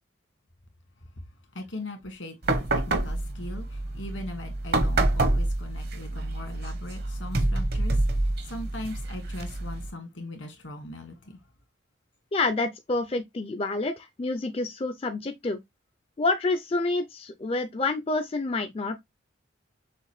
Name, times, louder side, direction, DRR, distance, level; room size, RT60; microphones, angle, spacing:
voice 1, 1.6-11.4, left 1 dB, 80° left, 1.8 m, -40 dB
sound 1, 2.4-9.9, right 2 dB, 55° right, 0.9 m, -27 dB
voice 2, 12.3-15.6 16.2-19.0, left 3 dB, 30° left, 0.4 m, -28 dB
6.4 x 2.5 x 3.1 m
head